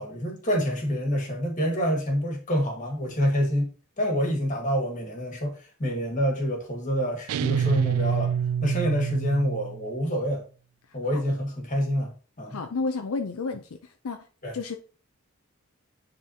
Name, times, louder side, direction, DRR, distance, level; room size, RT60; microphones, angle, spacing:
voice 1, 0.0-3.7 4.0-8.3 8.6-10.4 10.9-12.1 12.4-12.6 14.4-14.5, equal, 35° left, 1.8 m, -27 dB
sound 1, 7.3-9.9, right 8 dB, 80° right, 0.3 m, -26 dB
voice 2, 12.5-14.2 14.5-14.8, left 4 dB, 75° left, 0.5 m, -31 dB
9.7 x 4.0 x 2.8 m
head